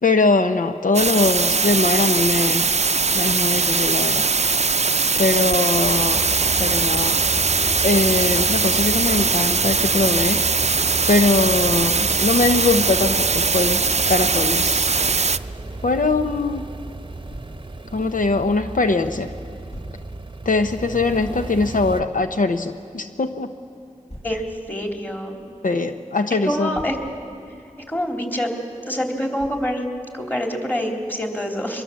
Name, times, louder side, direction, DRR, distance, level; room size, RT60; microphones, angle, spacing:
voice 1, 0.0-2.7 3.1-4.3 5.2-6.3 6.6-7.2 7.8-10.4 11.1-14.9 15.8-16.6 17.9-19.3 20.4-23.5 25.6-26.7, left 3 dB, 85° left, 7 dB, 0.8 m, -21 dB
sound 1, 0.9-15.4, right 4 dB, 55° right, 0.5 m, -20 dB
sound 2, 5.7-22.0, right 2 dB, 35° right, 0.8 m, -33 dB
Thump thud, 11.5-11.8 14.6-14.8 17.3-17.6 19.7-20.0 22.0-22.2 24.1-24.4 26.5-27.1 29.4-29.7, equal, 50° left, 6.1 m, -40 dB
voice 2, 24.2-25.4 26.3-27.0 27.9-28.5 28.9-29.9 30.1-31.8, equal, 15° left, 1 dB, 3.6 m, -26 dB
24.0 x 22.0 x 7.5 m, 2.5 s
wide cardioid pair, 40°, 13 cm